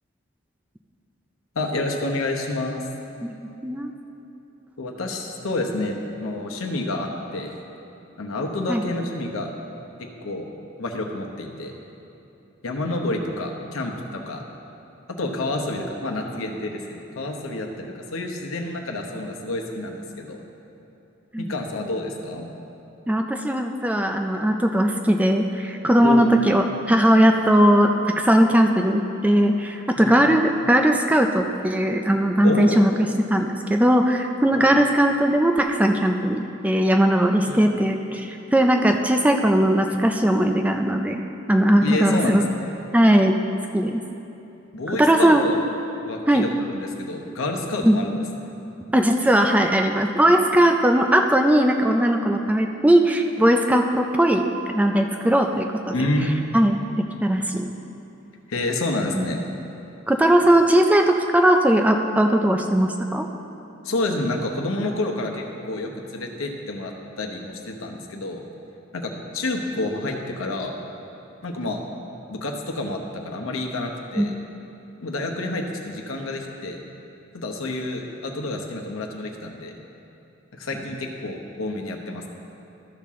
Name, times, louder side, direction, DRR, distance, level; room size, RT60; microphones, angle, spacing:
voice 1, 1.5-2.8 4.8-7.5 8.2-9.5 10.2-10.5 10.8-11.7 12.6-14.4 15.2-20.4 21.4-22.5 26.0-26.3 30.0-30.2 32.4-32.8 34.5-34.7 37.4-37.7 41.8-42.7 44.7-45.6 46.0-48.1 48.4-48.5 55.9-56.4 58.5-59.4 63.8-68.4 68.9-70.7 71.4-71.8 72.3-74.3 75.0-76.8 77.3-79.7 80.5-82.3, left 2 dB, 90° left, 1 dB, 0.9 m, -29 dB
voice 2, 23.1-32.9 33.3-41.2 41.5-42.4 42.9-43.3 43.7-44.0 44.9-45.5 46.3-46.5 47.8-48.0 48.9-56.1 56.5-56.8 57.2-57.7 59.1-59.2 60.1-63.3 74.2-74.3, right 1 dB, 5° right, 4 dB, 0.3 m, -19 dB
13.0 x 5.9 x 3.6 m, 2.9 s
head